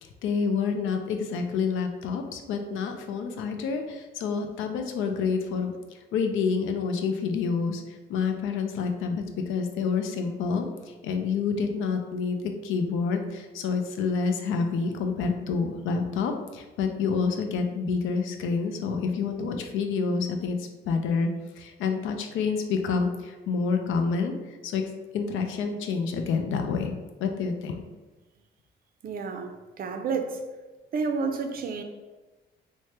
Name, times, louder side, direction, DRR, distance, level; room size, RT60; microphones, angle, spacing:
voice 1, 0.0-5.7 6.1-24.3 24.6-26.9 27.2-27.8, left 5 dB, 85° left, 5 dB, 0.4 m, -28 dB
voice 2, 29.0-29.5 29.8-30.4 30.9-31.8, right 5 dB, 45° right, 5 dB, 0.4 m, -30 dB
3.2 x 2.1 x 2.8 m, 1.2 s
cardioid pair, 90°, 20 cm